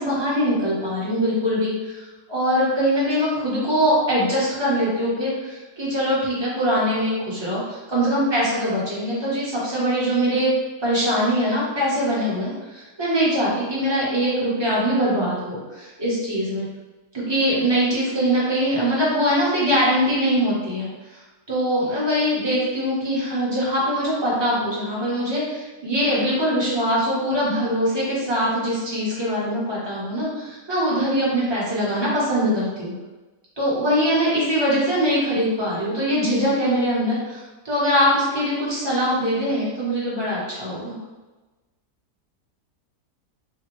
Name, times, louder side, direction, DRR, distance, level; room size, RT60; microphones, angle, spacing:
voice 1, 0.0-10.5 10.8-16.7 17.1-20.9 21.5-32.9 33.6-40.9, equal, 25° right, -8 dB, 0.7 m, -22 dB
3.4 x 2.0 x 3.0 m, 1.2 s
omnidirectional pair, 1.8 m